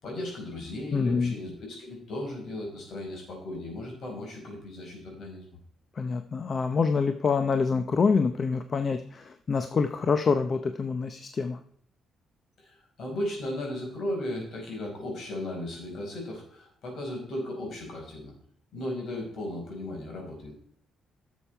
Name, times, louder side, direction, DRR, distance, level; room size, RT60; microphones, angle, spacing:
voice 1, 0.0-5.5 12.6-18.3 18.7-20.5, left 1 dB, 60° left, 0 dB, 5.1 m, -36 dB
voice 2, 0.9-1.3 6.0-11.6, left 5 dB, 40° left, 9 dB, 0.6 m, -26 dB
11.0 x 7.3 x 4.6 m, 0.63 s
cardioid pair, 90°, 0 cm